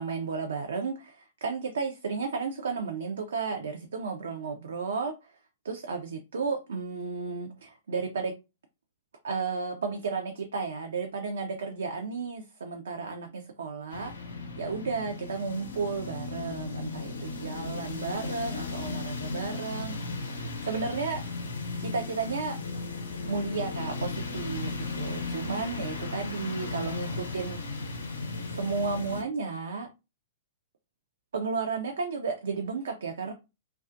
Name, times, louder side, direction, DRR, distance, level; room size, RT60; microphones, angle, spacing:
voice 1, 0.0-5.3 5.6-8.3 9.2-20.0 20.3-21.2 21.8-22.6 23.3-28.0 28.5-29.9 31.3-33.3, right 4 dB, 70° right, 0.4 m, -33 dB
sound 1, 13.9-29.2, left 3 dB, 75° left, 0.6 m, -36 dB
2.4 x 2.2 x 2.4 m
figure-of-eight pair, 110°, 0 cm